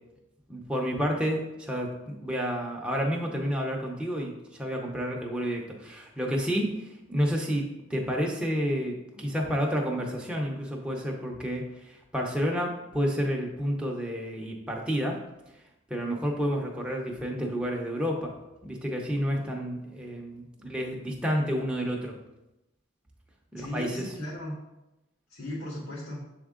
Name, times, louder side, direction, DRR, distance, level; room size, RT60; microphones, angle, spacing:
voice 1, 0.5-7.6 7.9-15.2 15.9-18.3 18.6-22.2 23.5-24.1, equal, 5° right, -1 dB, 0.6 m, -30 dB
voice 2, 23.5-24.5 25.3-26.2, left 1 dB, 90° left, -7 dB, 1.5 m, -36 dB
7.2 x 3.6 x 3.7 m, 0.95 s
head